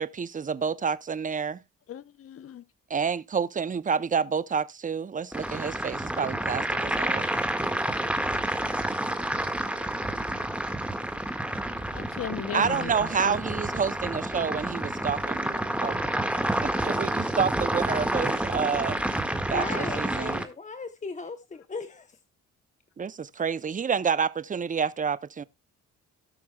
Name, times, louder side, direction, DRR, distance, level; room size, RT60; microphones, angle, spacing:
voice 1, 0.0-1.6 2.9-7.3 12.5-16.0 16.6-19.0 19.5-20.4 23.0-25.4, right 6 dB, 25° right, 0.6 m, -29 dB
voice 2, 1.9-2.6 9.8-9.9 11.9-13.4 20.2-20.3, left 9 dB, 50° left, 0.9 m, -37 dB
sound 1, 5.3-20.4, right 1 dB, 5° right, 1.7 m, -29 dB
voice 3, 19.5-22.2, left 4 dB, 25° left, 0.9 m, -37 dB
18.0 x 6.1 x 2.3 m
cardioid pair, 90°, 30 cm